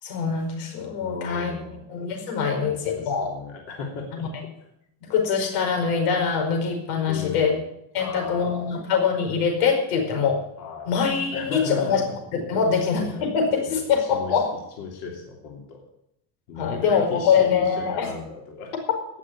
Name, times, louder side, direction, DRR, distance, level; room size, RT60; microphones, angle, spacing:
voice 1, 0.0-1.5 1.9-3.3 4.1-4.3 5.0-7.5 7.9-10.4 10.9-12.0 12.3-14.5 16.5-18.1, left 6 dB, 85° left, 3 dB, 5.1 m, -23 dB
voice 2, 1.0-1.9 2.5-4.2 7.1-7.6 8.0-8.8 10.6-10.9 11.3-12.2 12.5-12.6 13.0-13.3 13.6-14.4 14.8-15.8 16.5-18.7, left 5 dB, 50° left, -1 dB, 3.1 m, -36 dB
18.0 x 6.6 x 8.7 m, 0.79 s
cardioid pair, 180°, 45 cm